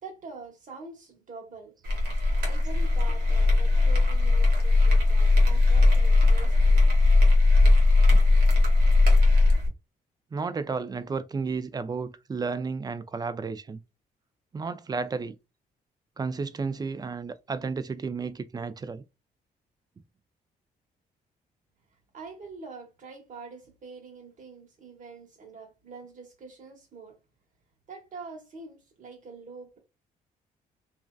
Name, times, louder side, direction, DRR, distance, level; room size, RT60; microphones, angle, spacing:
voice 1, 0.0-1.8 2.3-7.0 8.6-8.7 22.1-27.2 27.9-29.8, right 4 dB, 50° right, 1.1 m, -45 dB
sound 1, 1.8-9.7, left 2 dB, 90° right, 0.9 m, -19 dB
voice 2, 10.3-13.8 14.5-15.4 16.2-19.0, right 4 dB, 25° right, 0.3 m, -32 dB
2.5 x 2.2 x 2.2 m
cardioid pair, 75°, 17 cm